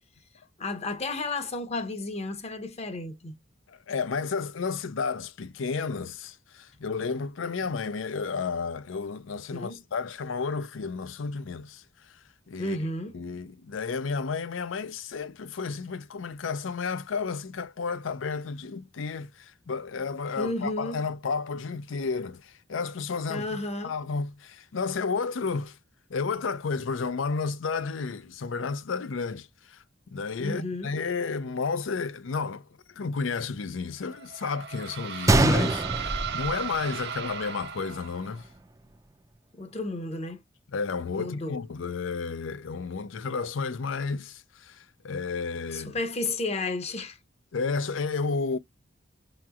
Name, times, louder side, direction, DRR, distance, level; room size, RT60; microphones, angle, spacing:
voice 1, 0.6-3.4 9.5-9.8 12.6-13.2 20.4-21.0 23.3-23.9 30.4-30.9 39.5-40.4 41.1-41.6 45.7-47.2, left 2 dB, 35° left, 0.8 m, -32 dB
voice 2, 3.7-11.8 12.5-12.8 13.1-23.6 23.8-25.8 26.1-38.5 40.7-45.9 47.5-48.6, left 4 dB, 75° left, 0.5 m, -32 dB
sound 1, 34.1-38.4, right 8 dB, 60° right, 0.7 m, -36 dB
Gunshot gunfire, 35.3-37.3 37.6-37.7 38.4-38.6, right 2 dB, 15° right, 0.4 m, -24 dB
5.8 x 2.9 x 2.4 m
head